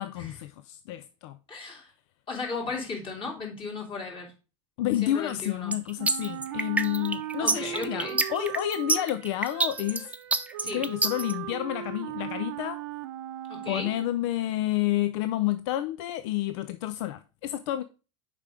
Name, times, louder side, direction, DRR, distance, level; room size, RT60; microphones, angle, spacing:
voice 1, 0.0-1.4 4.8-10.1 10.7-12.8 13.7-17.8, left 14 dB, 60° left, 0.5 m, -30 dB
voice 2, 1.5-1.9 2.3-4.3 5.0-5.8 7.4-8.2 10.6-10.9 13.5-13.9, left 4 dB, 30° left, 2.9 m, -36 dB
sound 1, 5.7-11.3, right 3 dB, 10° right, 0.6 m, -26 dB
Wind instrument woodwind instrument, 6.0-14.3, right 14 dB, 70° right, 0.7 m, -38 dB
6.4 x 5.1 x 3.6 m
hypercardioid pair, 85°, 16 cm